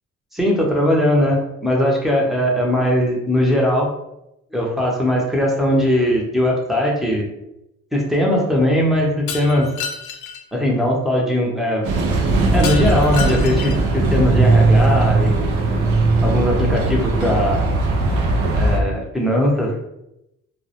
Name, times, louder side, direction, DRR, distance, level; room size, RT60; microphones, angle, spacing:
voice 1, 0.3-3.9 4.5-7.3 7.9-9.7 10.5-11.9 12.5-15.5 16.2-17.8 18.6-19.7, left 1 dB, ahead, -3 dB, 0.6 m, -19 dB
Shatter, 9.3-10.4 12.6-13.9, left 6 dB, 80° left, 0.5 m, -30 dB
sound 1, 11.8-18.8, right 3 dB, 90° right, 0.5 m, -18 dB
2.2 x 2.0 x 2.8 m, 0.85 s
cardioid pair, 90°, 30 cm